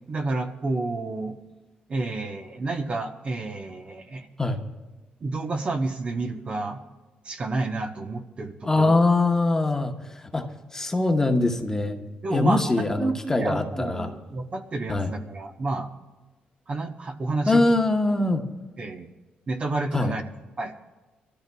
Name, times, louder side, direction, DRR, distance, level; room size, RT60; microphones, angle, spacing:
voice 1, 0.1-1.4 1.9-4.3 5.2-6.8 7.2-8.9 12.2-15.9 16.7-17.6 18.8-19.1 19.5-20.2 20.6-20.7, right 2 dB, 40° right, 5 dB, 0.9 m, -30 dB
voice 2, 8.6-9.9 10.2-10.5 10.7-12.0 12.3-14.1 14.9-15.1 17.5-18.4 19.9-20.1, left 2 dB, 15° left, 4 dB, 1.0 m, -22 dB
25.5 x 13.5 x 2.3 m, 1.2 s
cardioid pair, 115°, 3 cm